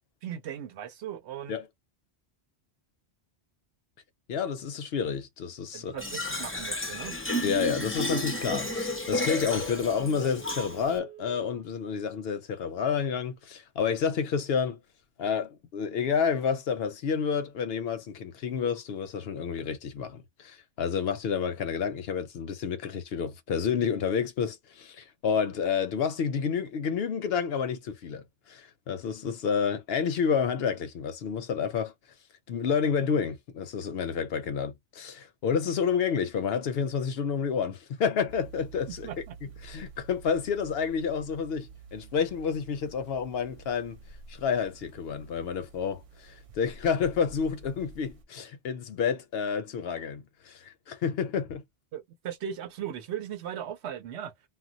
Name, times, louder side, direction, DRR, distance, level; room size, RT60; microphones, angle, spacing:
voice 1, 0.2-1.5 5.7-7.1 39.0-39.3 51.9-54.3, right 9 dB, 75° right, 0.9 m, -38 dB
voice 2, 4.3-6.0 7.4-14.8 15.2-31.9 32.5-39.1 39.6-44.0 44.3-51.6, left 6 dB, 65° left, 0.7 m, -29 dB
Fill (with liquid), 6.0-11.0, left 1 dB, 20° left, 0.4 m, -32 dB
Telephone, 8.6-11.7 12.1-12.2, right 13 dB, 15° right, 1.0 m, -48 dB
sound 1, 38.3-48.2, right 5 dB, 55° right, 0.3 m, -49 dB
2.2 x 2.1 x 3.8 m
omnidirectional pair, 1.1 m